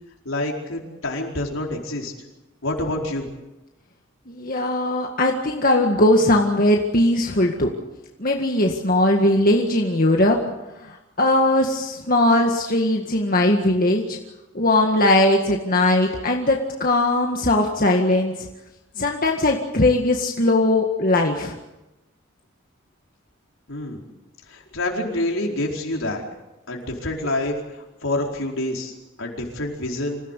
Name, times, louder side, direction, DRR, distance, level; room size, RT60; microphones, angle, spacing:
voice 1, 0.2-2.1 2.6-3.3 23.7-24.0 24.5-26.2 26.7-30.2, left 1 dB, 80° left, 0 dB, 4.7 m, -27 dB
voice 2, 4.3-7.7 8.2-10.4 11.2-14.2 14.6-18.3 19.0-21.6, left 1 dB, 45° left, 1 dB, 1.9 m, -19 dB
26.0 x 16.5 x 8.3 m, 1.0 s
head